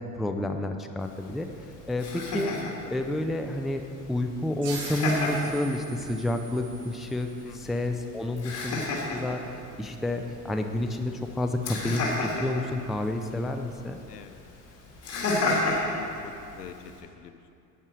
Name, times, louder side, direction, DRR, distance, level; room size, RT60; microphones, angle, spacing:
voice 1, 0.2-1.5 1.9-2.1 2.3-2.5 2.9-14.0, left 1 dB, ahead, 6 dB, 0.3 m, -30 dB
Laughter, 1.0-17.0, left 2 dB, 30° left, 2.9 m, -34 dB
sound 1, 4.6-7.9, right 6 dB, 55° right, 1.3 m, -44 dB
voice 2, 7.4-7.9 14.1-14.5 15.1-17.5, left 8 dB, 80° left, 9 dB, 0.8 m, -43 dB
11.0 x 9.3 x 4.8 m, 2.6 s
figure-of-eight pair, 70°, 47 cm